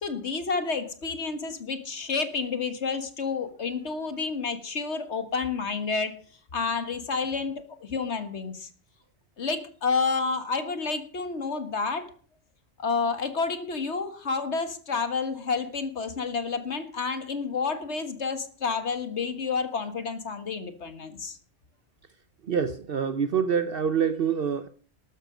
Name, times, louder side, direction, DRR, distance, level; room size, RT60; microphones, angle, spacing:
voice 1, 0.0-6.2 6.5-8.7 9.4-12.1 12.8-21.4, left 4 dB, 75° left, 1.9 m, -30 dB
voice 2, 22.5-24.7, right 7 dB, 60° right, 0.9 m, -26 dB
13.0 x 12.5 x 5.1 m
omnidirectional pair, 1.2 m